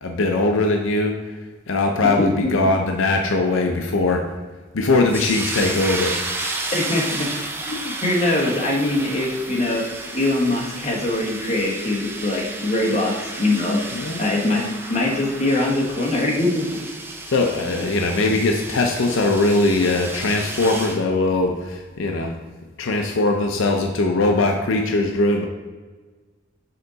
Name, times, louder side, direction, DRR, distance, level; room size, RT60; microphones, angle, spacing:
voice 1, 0.0-1.2 1.7-4.2 4.7-6.2 13.9-14.2 17.3-22.3 22.8-25.5, left 2 dB, 80° left, 3 dB, 0.5 m, -20 dB
voice 2, 2.0-2.5 6.7-7.3 7.6-13.8 14.2-14.6 14.9-16.7, left 2 dB, 35° left, -2 dB, 1.2 m, -22 dB
sound 1, 5.1-21.0, right 2 dB, 10° right, 0.6 m, -32 dB
6.6 x 3.8 x 4.0 m, 1.4 s
head